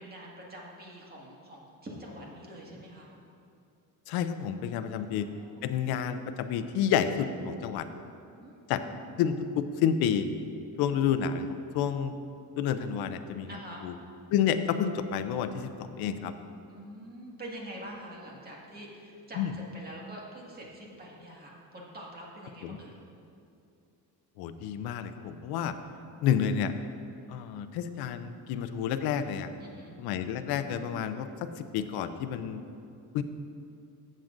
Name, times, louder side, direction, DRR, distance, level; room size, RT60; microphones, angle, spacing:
voice 1, 0.0-3.1 4.8-5.7 8.4-9.0 13.5-13.8 16.7-22.9 29.6-29.9, right 1 dB, 25° right, -3 dB, 1.9 m, -45 dB
voice 2, 4.1-5.3 5.6-7.9 8.7-8.8 9.2-10.3 10.8-12.1 12.6-13.5 13.8-13.9 14.3-16.3 19.4-19.5 22.6-22.8 24.4-25.7 26.2-26.7 27.3-29.5 30.0-31.3 31.6-32.6 33.1-33.2, left 8 dB, 90° left, 10 dB, 0.6 m, -29 dB
15.0 x 7.6 x 2.6 m, 2.6 s
cardioid pair, 130°, 36 cm